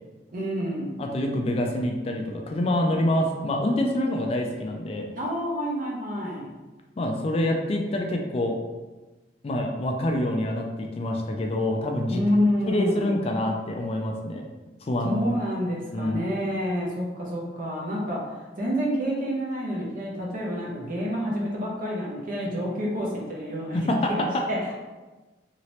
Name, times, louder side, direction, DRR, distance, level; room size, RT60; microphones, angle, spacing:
voice 1, 0.3-1.0 5.1-6.5 12.1-13.1 15.0-23.8 24.1-24.6, equal, 50° right, -3 dB, 0.8 m, -28 dB
voice 2, 1.0-5.1 7.0-8.6 9.4-12.2 12.7-14.4 14.8-15.2 15.9-16.2 23.7-24.4, left 1 dB, 35° left, 2 dB, 0.3 m, -26 dB
2.9 x 2.8 x 3.1 m, 1.2 s
head